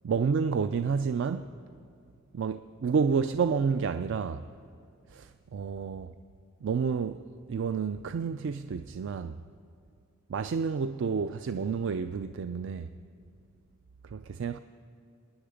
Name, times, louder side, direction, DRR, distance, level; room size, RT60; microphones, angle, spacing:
voice 1, 0.0-1.5 2.3-4.4 5.1-6.1 6.6-9.4 10.3-12.9 14.0-14.6, right 5 dB, 60° right, 0.4 m, -30 dB
26.0 x 10.5 x 5.1 m
head